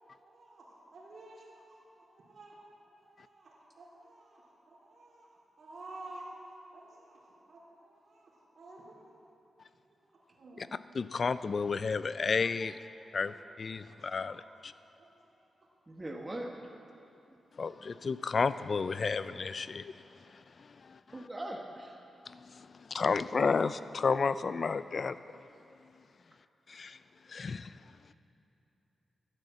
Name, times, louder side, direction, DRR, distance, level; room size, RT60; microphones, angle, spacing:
voice 1, 0.0-2.5 2.8-5.3 5.6-6.4 6.7-9.2 9.8-10.6 12.6-12.8 13.2-13.3 13.7-14.5 15.0-15.5 16.0-16.1 19.6-19.7, right 2 dB, 60° right, -4 dB, 3.2 m, -52 dB
voice 2, 10.9-12.8 13.1-14.4 14.6-14.7 17.6-19.8 20.9-21.0 22.3-25.2 26.7-27.0 27.3-27.7, left 5 dB, 50° left, 14 dB, 0.3 m, -31 dB
voice 3, 15.9-16.5 21.1-22.0, right 1 dB, 20° right, 0 dB, 1.0 m, -40 dB
10.5 x 9.7 x 7.4 m, 2.9 s
cardioid pair, 100°, 0 cm